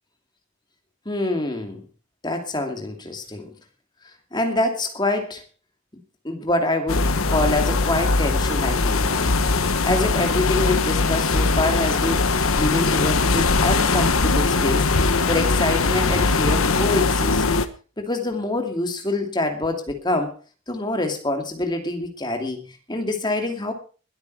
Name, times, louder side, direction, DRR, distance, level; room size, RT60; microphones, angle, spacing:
voice 1, 1.1-1.8 2.2-3.5 4.3-5.4 6.2-9.3 9.8-12.3 12.6-14.9 15.3-17.4 18.0-20.4 20.7-23.7, left 2 dB, 20° left, 2.5 m, -25 dB
sound 1, 6.9-17.7, left 3 dB, 80° left, 1.2 m, -20 dB
21.5 x 8.7 x 4.7 m
head